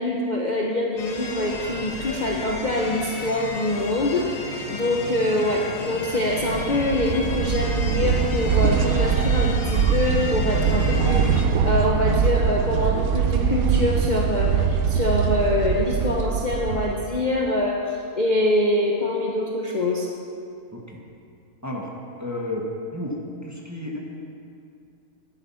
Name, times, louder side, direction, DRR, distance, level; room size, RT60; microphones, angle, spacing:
voice 1, 0.0-17.8 18.2-20.1, left 1 dB, 35° left, -2 dB, 0.9 m, -24 dB
sound 1, 1.0-11.5, left 3 dB, 60° left, 1.5 m, -32 dB
sound 2, 6.3-17.3, right 7 dB, 70° right, 1.1 m, -23 dB
voice 2, 22.2-22.6 22.9-24.0, left 1 dB, 10° right, -2 dB, 1.4 m, -32 dB
12.0 x 11.0 x 5.7 m, 2.5 s
omnidirectional pair, 1.7 m